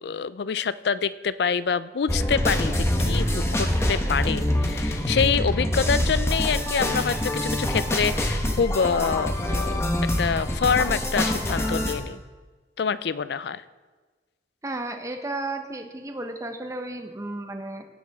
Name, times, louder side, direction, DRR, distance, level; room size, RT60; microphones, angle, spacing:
voice 1, 0.0-9.7 10.2-12.2 12.8-13.6, left 6 dB, 65° left, 16 dB, 0.4 m, -26 dB
sound 1, 2.1-12.0, left 1 dB, 15° left, 1.1 m, -25 dB
voice 2, 14.6-17.8, right 2 dB, 20° right, 5 dB, 0.8 m, -33 dB
16.0 x 10.5 x 3.5 m, 1.3 s
head